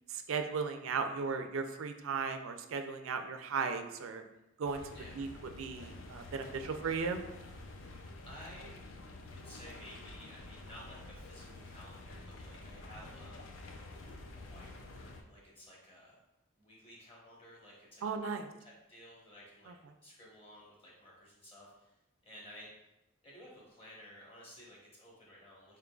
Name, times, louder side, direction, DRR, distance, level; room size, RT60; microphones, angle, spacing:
voice 1, 0.1-4.2 4.6-4.8 5.1-5.3 5.6-7.2 18.0-18.5 19.7-19.8, right 5 dB, 75° right, 7 dB, 0.4 m, -36 dB
sound 1, 4.6-15.2, left 2 dB, 70° left, 0.4 m, -49 dB
voice 2, 8.2-8.8 9.3-13.8 14.4-16.2 16.6-19.7 20.0-21.9 22.2-22.7 23.2-25.8, equal, 25° left, -5 dB, 1.0 m, -54 dB
4.4 x 3.7 x 2.3 m, 0.93 s
head